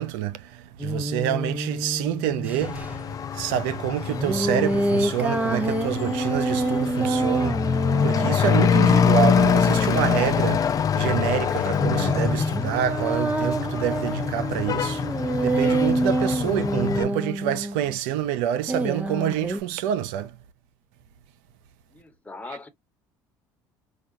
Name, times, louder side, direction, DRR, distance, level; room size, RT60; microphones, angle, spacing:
voice 1, 0.0-2.8 3.3-7.8 8.0-10.7 11.0-15.0 15.4-20.3, right 11 dB, 80° right, 0.5 m, -27 dB
sound 1, 0.8-2.9 4.1-10.8 11.6-18.0 18.7-19.6, right 1 dB, 15° right, 0.8 m, -27 dB
Truck / Accelerating revving vroom, 2.6-17.0, left 7 dB, 35° left, 0.4 m, -25 dB
voice 2, 21.9-22.7, left 3 dB, 15° left, 1.2 m, -40 dB
4.8 x 2.3 x 2.6 m
supercardioid pair, 75°, 10 cm